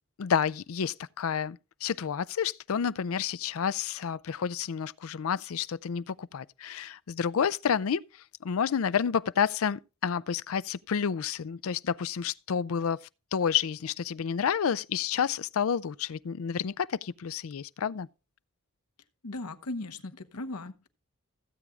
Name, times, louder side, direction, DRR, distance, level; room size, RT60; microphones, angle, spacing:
voice 1, 0.2-13.0 13.3-18.1, left 7 dB, 65° left, 0.4 m, -30 dB
voice 2, 19.2-20.9, left 2 dB, 90° left, 1.0 m, -38 dB
16.5 x 8.3 x 2.4 m
head